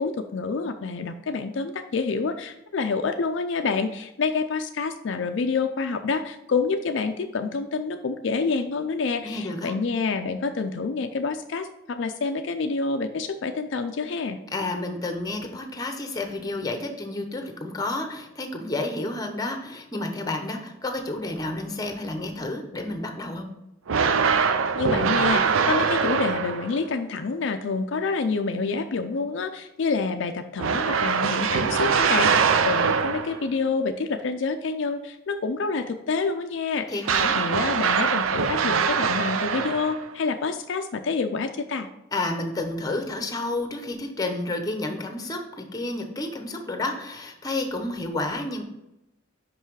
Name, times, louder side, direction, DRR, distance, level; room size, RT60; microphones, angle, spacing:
voice 1, 0.0-14.4 24.8-41.9, left 4 dB, 60° left, 6 dB, 0.4 m, -28 dB
voice 2, 9.2-9.7 14.5-23.5 36.9-37.3 42.1-48.6, left 2 dB, 20° left, 5 dB, 0.8 m, -30 dB
sound 1, 23.9-26.8 30.6-33.5 37.0-40.1, right 6 dB, 80° right, 0.5 m, -23 dB
5.6 x 5.5 x 4.7 m, 0.90 s
head